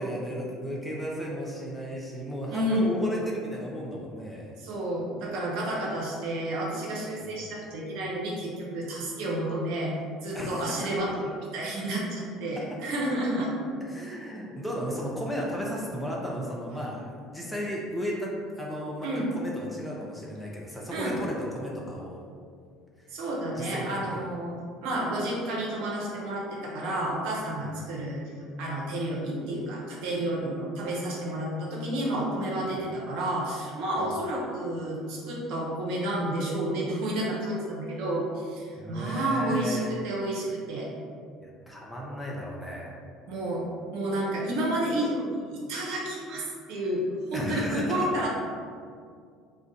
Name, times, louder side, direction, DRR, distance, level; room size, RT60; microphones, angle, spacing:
voice 1, 0.0-3.2 3.5-4.5 7.2-7.4 10.3-10.7 13.8-19.1 19.3-22.3 23.0-23.1 23.5-24.1 27.6-27.8 34.0-34.1 38.8-40.0 41.4-42.9 47.3-47.9, equal, ahead, -4 dB, 0.6 m, -34 dB
voice 2, 2.5-2.9 4.6-9.9 10.2-11.2 11.5-13.5 19.0-19.3 20.9-21.2 23.1-24.5 24.8-28.2 28.6-40.9 43.3-43.6 43.9-47.0 47.3-48.3, right 1 dB, 65° right, -4 dB, 0.8 m, -30 dB
2.4 x 2.2 x 3.9 m, 2.2 s
hypercardioid pair, 65°, 0 cm